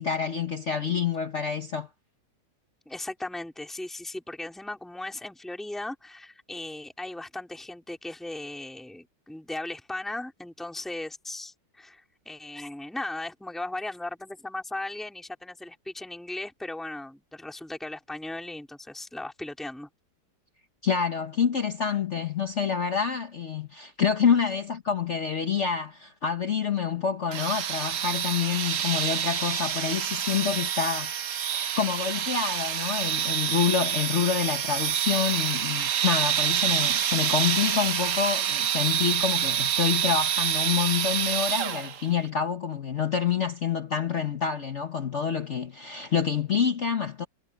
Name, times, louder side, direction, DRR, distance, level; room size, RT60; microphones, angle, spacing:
voice 1, 0.0-1.9 20.8-47.2, left 7 dB, 45° left, 1.3 m, -27 dB
voice 2, 2.8-19.9, left 2 dB, ahead, 3.3 m, -37 dB
sound 1, 27.3-42.1, right 9 dB, 55° right, 1.1 m, -27 dB
omnidirectional pair, 2.0 m